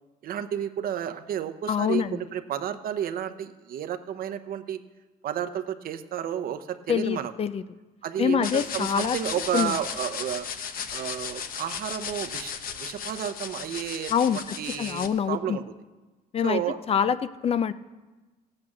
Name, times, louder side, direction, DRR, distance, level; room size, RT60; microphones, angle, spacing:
voice 1, 0.2-4.8 5.2-7.3 8.0-10.5 10.9-15.6 16.4-16.8, right 9 dB, 60° right, 9 dB, 0.9 m, -32 dB
voice 2, 1.7-2.2 6.9-7.6 8.2-9.2 9.5-9.8 14.1-15.6 16.3-16.6 16.9-17.7, left 8 dB, 35° left, 14 dB, 0.5 m, -25 dB
sound 1, 8.4-15.1, left 7 dB, 60° left, 1.0 m, -35 dB
15.0 x 8.8 x 6.1 m, 1.2 s
cardioid pair, 110°, 17 cm